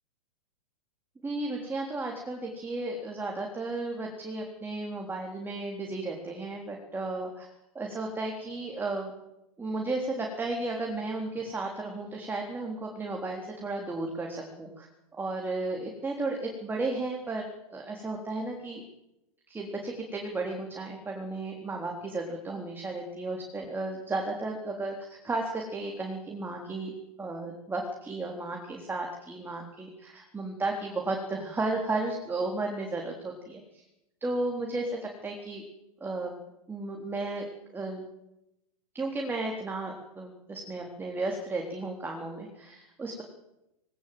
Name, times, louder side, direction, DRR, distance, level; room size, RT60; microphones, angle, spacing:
voice 1, 1.2-7.5 7.7-9.1 9.6-14.9 15.1-18.8 19.5-26.9 27.2-33.8 34.2-35.6 36.0-36.3 36.7-37.5 37.7-38.1 38.9-43.2, right 2 dB, 10° right, 1 dB, 3.8 m, -34 dB
20.0 x 19.0 x 8.0 m, 0.89 s
hypercardioid pair, 120°, 19 cm